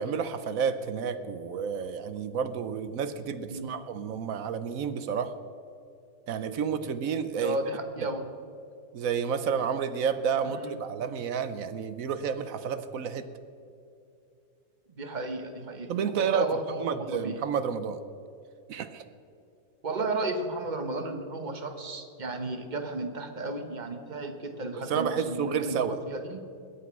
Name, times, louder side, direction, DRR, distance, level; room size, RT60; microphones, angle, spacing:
voice 1, 0.0-5.3 6.3-7.6 8.9-13.3 15.9-16.5 16.8-18.0 18.7-19.0 24.9-26.0, right 7 dB, 60° right, 11 dB, 1.0 m, -30 dB
voice 2, 3.5-3.8 7.4-8.3 10.4-10.7 15.0-17.4 19.8-26.4, right 2 dB, 30° right, 6 dB, 1.1 m, -34 dB
21.0 x 8.4 x 6.1 m, 2.6 s
omnidirectional pair, 1.8 m